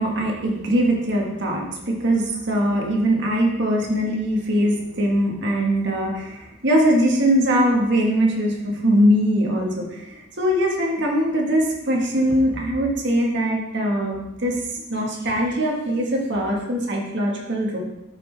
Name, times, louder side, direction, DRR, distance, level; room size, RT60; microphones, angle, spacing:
voice 1, 0.0-17.8, equal, 55° right, -1 dB, 1.7 m, -21 dB
13.0 x 5.7 x 3.5 m, 0.90 s
head